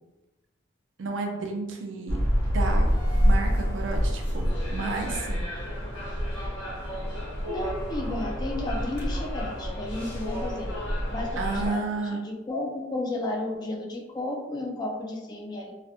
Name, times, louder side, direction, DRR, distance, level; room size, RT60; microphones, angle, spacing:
voice 1, 1.0-2.2 2.5-2.9 3.2-5.4 11.4-12.2, right 3 dB, 75° right, 3 dB, 0.4 m, -31 dB
sound 1, 2.1-11.7, equal, 70° left, 0.9 m, -27 dB
voice 2, 7.5-10.7 11.1-15.7, left 2 dB, 20° left, 0 dB, 0.3 m, -33 dB
2.3 x 2.1 x 2.7 m, 1.1 s
head